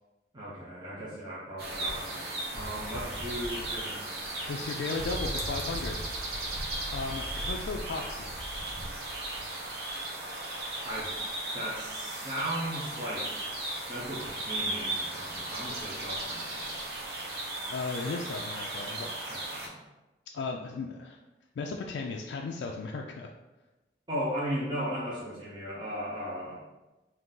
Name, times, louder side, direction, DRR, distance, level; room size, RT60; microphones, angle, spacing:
voice 1, 0.3-2.3 2.5-4.1 10.8-11.1 11.5-13.4 13.9-16.8 19.3-19.8 24.1-26.6, equal, 25° right, -8 dB, 0.7 m, -36 dB
sound 1, 1.6-19.7, right 1 dB, 60° right, 0.8 m, -36 dB
voice 2, 4.5-6.0 6.9-8.3 17.7-19.2 20.3-21.2 21.6-23.3, left 4 dB, 85° left, 1 dB, 0.3 m, -35 dB
3.8 x 2.6 x 3.7 m, 1.1 s
head